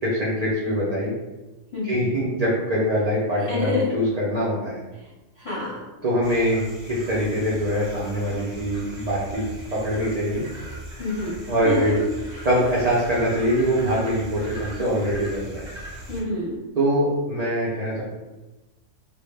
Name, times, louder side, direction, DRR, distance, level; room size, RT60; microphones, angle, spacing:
voice 1, 0.0-1.1 1.8-4.8 6.0-10.4 11.5-11.9 12.4-15.7 16.8-18.0, equal, 65° right, -7 dB, 0.4 m, -23 dB
voice 2, 1.7-2.0 3.5-3.9 5.0-5.1 5.4-5.8 11.0-11.4 11.6-12.0 12.3-12.5 16.1-16.6, left 3 dB, 30° left, -8 dB, 0.7 m, -27 dB
sound 1, 6.2-16.2, right 1 dB, 30° right, 0.6 m, -39 dB
2.1 x 2.0 x 3.2 m, 1.1 s
omnidirectional pair, 1.3 m